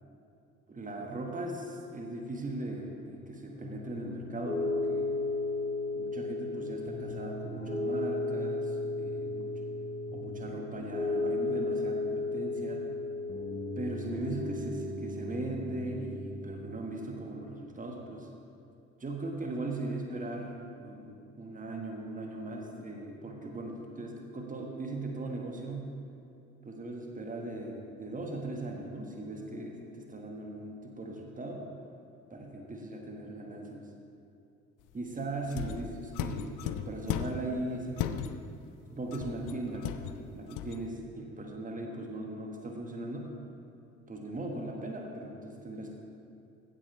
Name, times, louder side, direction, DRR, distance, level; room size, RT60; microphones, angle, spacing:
voice 1, 0.7-5.1 5.9-9.5 10.1-12.8 13.8-18.3 19.0-25.9 26.6-31.6 32.3-33.8 34.9-38.4 38.9-43.3 44.1-46.0, right 2 dB, 20° right, 1 dB, 1.6 m, -39 dB
Piano, 3.5-16.6, left 2 dB, 20° left, 2.3 m, -34 dB
sound 1, 35.5-37.5 38.0-38.6 39.1-40.9, left 11 dB, 50° left, 0.5 m, -37 dB
16.0 x 8.1 x 3.3 m, 2.7 s
figure-of-eight pair, 45°, 40 cm